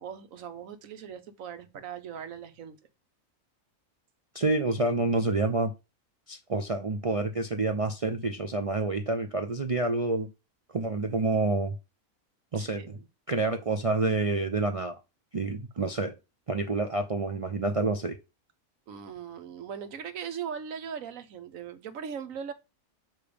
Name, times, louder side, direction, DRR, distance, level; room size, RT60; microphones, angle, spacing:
voice 1, 0.0-2.8 12.5-13.1 18.9-22.5, right 7 dB, 80° right, 1.3 m, -39 dB
voice 2, 4.3-5.7 6.3-10.3 10.7-11.7 12.5-12.9 13.3-15.0 15.3-16.2 16.5-18.2, right 3 dB, 45° right, 0.5 m, -28 dB
6.9 x 3.1 x 5.0 m
omnidirectional pair, 1.4 m